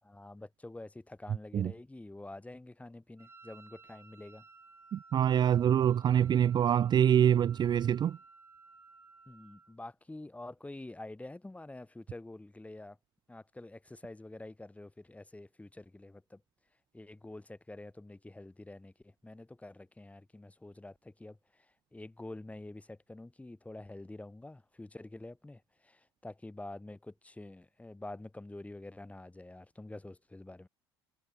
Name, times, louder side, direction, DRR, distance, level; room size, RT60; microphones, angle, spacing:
voice 1, 0.0-4.4 9.3-13.0 13.3-16.4 16.9-30.7, left 2 dB, 10° left, 4.0 m, -47 dB
Wind instrument woodwind instrument, 3.2-9.8, right 3 dB, 20° right, 2.9 m, -57 dB
voice 2, 4.9-8.2, right 9 dB, 35° right, 0.4 m, -25 dB
hypercardioid pair, 60°, 13 cm